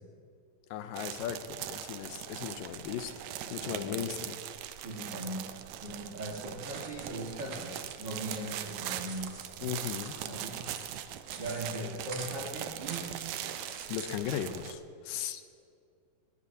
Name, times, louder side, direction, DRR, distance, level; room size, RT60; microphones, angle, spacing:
voice 1, 0.7-3.1 3.5-4.4 9.6-10.1 13.9-15.4, left 10 dB, 80° left, 10 dB, 2.3 m, -37 dB
sound 1, 0.9-14.7, right 11 dB, 85° right, 1.6 m, -41 dB
voice 2, 3.6-4.0 4.8-5.5 5.8-9.8 10.2-10.6 11.4-13.2 14.4-14.5, right 1 dB, 45° right, -3 dB, 1.6 m, -39 dB
sound 2, 6.2-14.2, right 5 dB, 70° right, 1.2 m, -47 dB
20.5 x 20.0 x 2.8 m, 2.3 s
omnidirectional pair, 3.9 m